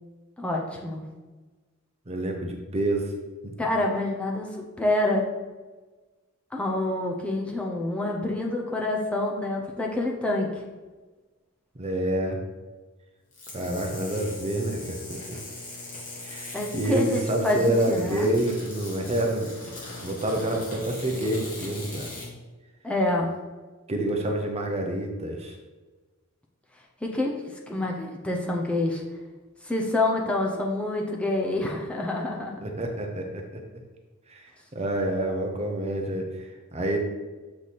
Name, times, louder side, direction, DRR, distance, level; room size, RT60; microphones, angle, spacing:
voice 1, 0.4-1.0 3.6-5.3 6.5-10.6 16.5-17.6 17.9-18.3 22.8-23.3 27.0-29.0 29.6-32.6, left 2 dB, 5° left, -2 dB, 0.6 m, -27 dB
voice 2, 2.1-3.1 11.8-12.4 13.5-15.4 16.2-19.5 20.0-22.1 23.9-25.5 32.6-33.6 34.3-34.5 34.7-37.0, right 1 dB, 30° right, 2 dB, 0.7 m, -28 dB
sound 1, 13.3-22.3, left 2 dB, 40° left, 1.6 m, -40 dB
7.2 x 3.3 x 4.2 m, 1.2 s
head